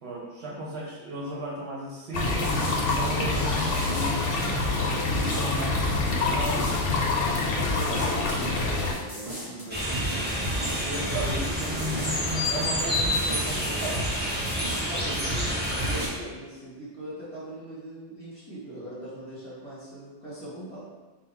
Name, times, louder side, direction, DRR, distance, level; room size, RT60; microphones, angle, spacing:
voice 1, 0.0-2.5 3.0-6.7 7.7-8.0 10.5-14.1, equal, 65° right, -3 dB, 0.9 m, -35 dB
sound 1, 2.1-8.9, left 3 dB, 55° left, 0.8 m, -26 dB
sound 2, 2.2-16.1, equal, 35° right, 1.3 m, -35 dB
voice 2, 7.3-10.5 11.1-11.3 11.8-12.1 14.9-20.9, right 1 dB, 25° left, -9 dB, 1.4 m, -40 dB
sound 3, 9.7-16.1, equal, 10° right, 0.6 m, -28 dB
3.8 x 2.3 x 4.2 m, 1.2 s
omnidirectional pair, 1.2 m